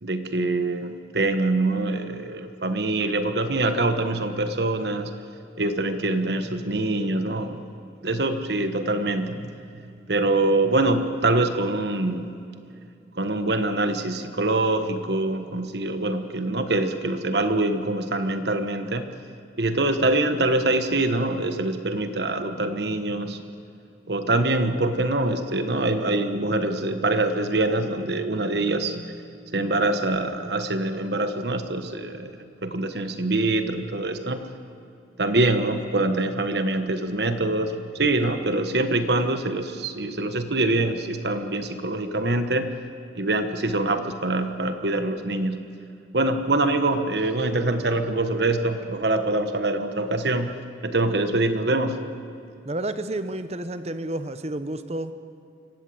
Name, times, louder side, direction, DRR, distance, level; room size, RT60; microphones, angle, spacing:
voice 1, 0.0-5.1 5.6-7.6 8.0-9.8 10.1-12.3 13.1-19.1 19.6-23.4 24.1-29.2 29.5-34.5 35.2-42.7 43.1-45.7 46.1-50.5 50.8-52.0, right 2 dB, 65° right, 8 dB, 1.3 m, -24 dB
voice 2, 52.6-55.1, right 1 dB, 35° right, 11 dB, 0.9 m, -30 dB
25.0 x 16.5 x 7.9 m, 2.6 s
head